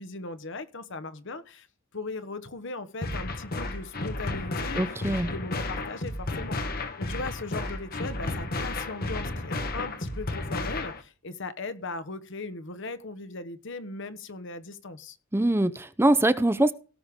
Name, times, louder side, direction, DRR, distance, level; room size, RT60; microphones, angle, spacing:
voice 1, 0.0-1.7 1.9-15.2, left 3 dB, 65° left, 12 dB, 1.2 m, -38 dB
sound 1, 3.0-11.0, left 2 dB, 50° left, 1.6 m, -33 dB
voice 2, 4.8-5.3 15.3-16.7, right 1 dB, 10° right, 12 dB, 0.6 m, -23 dB
17.5 x 6.5 x 3.7 m, 0.37 s
head